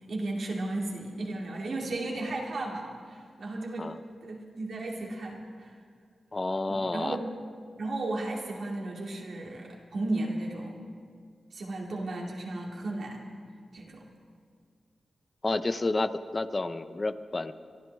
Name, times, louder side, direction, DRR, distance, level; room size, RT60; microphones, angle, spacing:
voice 1, 0.1-3.9 4.2-5.7 6.7-7.3 7.8-10.8 11.5-13.2 13.7-14.0, right 2 dB, 70° right, -1 dB, 2.6 m, -34 dB
voice 2, 6.3-7.2 15.4-17.5, left 2 dB, 40° left, 11 dB, 0.7 m, -30 dB
25.5 x 12.5 x 3.5 m, 2.1 s
supercardioid pair, 40°, 0 cm